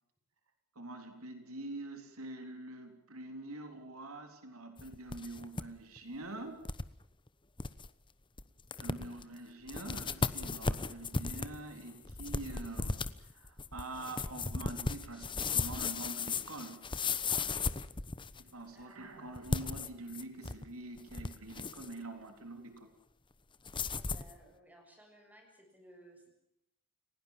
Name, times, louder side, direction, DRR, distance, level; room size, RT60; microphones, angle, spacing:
voice 1, 0.8-6.6 8.8-13.0 13.3-16.8 18.4-22.9, right 2 dB, 70° right, 6 dB, 3.8 m, -45 dB
sound 1, 4.8-5.6 6.0-6.1 6.6-6.9 7.3-7.4 7.6-7.9 8.4-8.5 8.7-9.2 9.7-18.5 19.4-20.6 21.0-21.9 23.6-24.3, left 4 dB, 20° left, 1.0 m, -36 dB
voice 2, 24.0-26.3, right 1 dB, 5° right, 3 dB, 7.3 m, -59 dB
30.0 x 18.0 x 7.5 m, 0.80 s
head